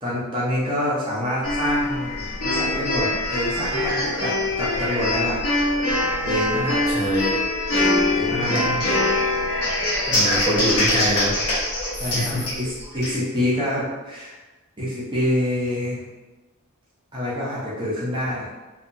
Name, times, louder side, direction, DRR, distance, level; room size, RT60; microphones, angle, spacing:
voice 1, 0.0-5.4 6.0-6.8 8.1-8.6 12.0-14.4 14.8-16.0 17.1-18.5, left 1 dB, 20° right, -8 dB, 0.6 m, -26 dB
sound 1, 1.4-13.1, left 1 dB, 80° left, 0.8 m, -23 dB
voice 2, 6.9-7.3 8.3-8.8 10.0-11.3 12.0-12.5, equal, 15° left, -8 dB, 0.8 m, -24 dB
2.7 x 2.3 x 2.6 m, 1.2 s
head